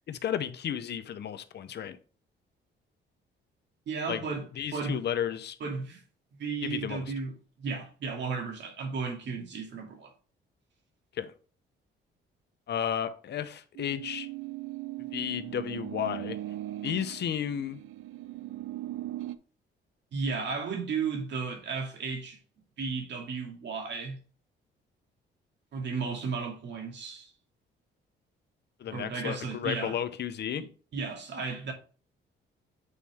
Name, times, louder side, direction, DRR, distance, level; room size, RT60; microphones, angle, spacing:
voice 1, 0.1-2.0 4.1-4.2 4.5-5.6 6.6-7.0 11.2-11.3 12.7-14.3 15.1-16.4 16.8-17.8 28.8-30.6, left 9 dB, 60° left, 0.9 m, -33 dB
voice 2, 3.9-4.4 4.7-5.0 5.6-6.0 6.3-7.3 7.6-10.1 20.1-22.4 22.8-24.2 25.7-27.3 28.9-30.0 30.5-30.7 30.9-31.7, right 5 dB, 65° right, 2.4 m, -34 dB
sound 1, 13.8-19.4, right 15 dB, 90° right, 0.5 m, -39 dB
8.3 x 4.2 x 3.6 m
cardioid pair, 90°, 20 cm